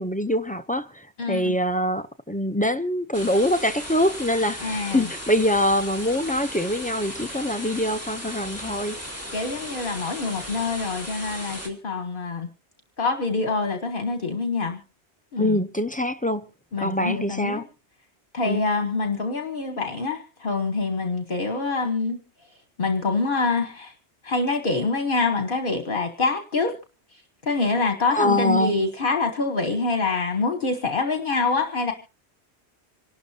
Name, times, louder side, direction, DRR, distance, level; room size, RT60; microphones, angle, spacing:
voice 1, 0.0-9.0 15.4-16.4 16.8-17.6 18.4-18.6 28.1-28.8, left 1 dB, 10° left, 0.5 m, -24 dB
voice 2, 1.2-1.5 4.6-5.1 9.3-12.5 13.0-14.8 15.3-15.6 16.7-17.6 18.3-22.2 22.8-23.9 24.2-26.8 27.4-31.9, left 3 dB, 50° left, 1.4 m, -25 dB
sound 1, 3.1-11.7, equal, 15° right, 2.9 m, -36 dB
26.5 x 12.0 x 2.8 m
omnidirectional pair, 1.1 m